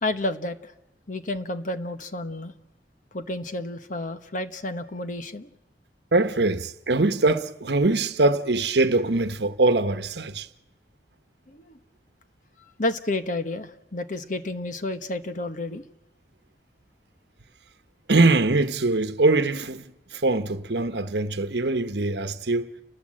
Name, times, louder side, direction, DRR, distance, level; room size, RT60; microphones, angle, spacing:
voice 1, 0.0-0.7 1.1-2.5 3.1-5.5 11.5-11.8 12.8-15.9, left 2 dB, 45° left, 1.2 m, -30 dB
voice 2, 6.1-10.5 18.1-19.8 20.1-22.7, right 2 dB, 70° right, 1.1 m, -22 dB
29.5 x 20.0 x 7.7 m
head